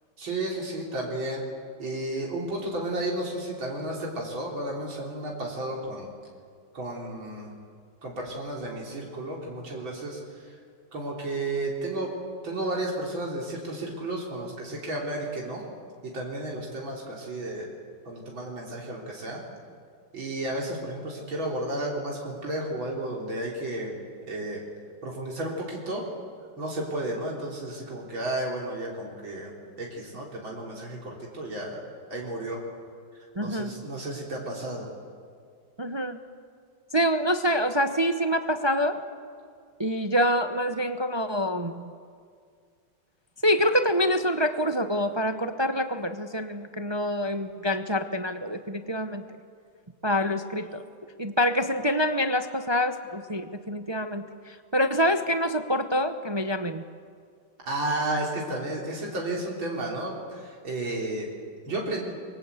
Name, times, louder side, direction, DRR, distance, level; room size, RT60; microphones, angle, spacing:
voice 1, 0.2-1.4 1.8-6.1 6.7-7.5 8.0-10.5 10.9-12.1 12.4-15.6 16.0-17.7 18.1-19.4 20.1-24.0 24.3-24.6 25.0-26.1 26.6-29.5 29.8-31.8 32.1-32.6 33.4-34.9 57.7-61.3 61.7-62.0, right 1 dB, 85° right, -2 dB, 4.4 m, -32 dB
voice 2, 33.4-33.7 35.8-36.2 36.9-39.0 39.8-41.9 43.4-49.2 50.0-50.8 51.2-56.8, equal, 30° right, 8 dB, 0.4 m, -26 dB
28.0 x 23.5 x 8.3 m, 2.1 s
omnidirectional pair, 2.1 m